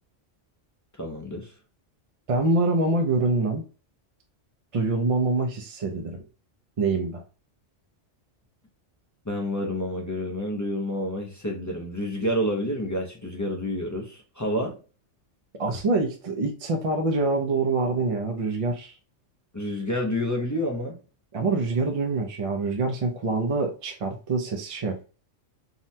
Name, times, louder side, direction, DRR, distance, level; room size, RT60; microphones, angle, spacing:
voice 1, 1.0-1.5 9.3-14.8 19.5-21.0, equal, 30° left, 0 dB, 0.3 m, -29 dB
voice 2, 2.3-3.6 4.7-6.2 6.8-7.2 15.6-18.9 21.3-25.0, right 3 dB, 55° right, 3 dB, 0.3 m, -25 dB
3.7 x 2.1 x 2.6 m, 0.35 s
omnidirectional pair, 1.3 m